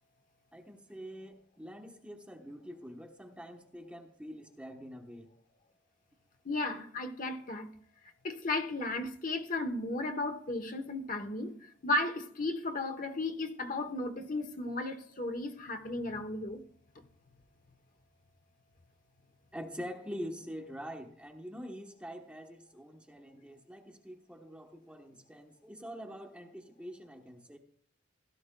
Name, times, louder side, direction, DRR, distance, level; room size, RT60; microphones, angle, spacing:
voice 1, 0.5-5.3 19.5-27.6, equal, 5° right, 0.9 m, -45 dB
voice 2, 6.4-7.7 8.2-11.5 11.8-16.6, left 2 dB, 45° left, 0.9 m, -34 dB
16.5 x 12.0 x 2.2 m
head